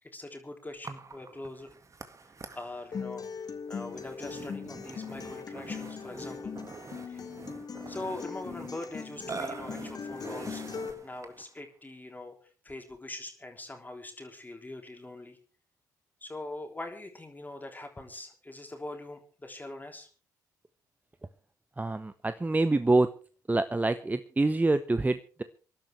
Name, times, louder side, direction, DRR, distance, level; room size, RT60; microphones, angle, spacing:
voice 1, 0.0-1.7 2.5-3.2 3.7-6.6 7.1-7.3 7.9-10.7 11.0-12.4 12.6-15.4 16.2-20.1, left 2 dB, 20° left, 4 dB, 3.6 m, -42 dB
Burping eructation, 0.8-11.5, right 4 dB, 35° right, 1.9 m, -45 dB
Acoustic guitar, 2.9-10.9, left 6 dB, 45° left, 2.0 m, -40 dB
voice 2, 21.8-23.1 23.5-25.4, right 2 dB, 15° right, 12 dB, 0.9 m, -26 dB
26.5 x 11.5 x 3.4 m, 0.39 s
hypercardioid pair, 45°, 9 cm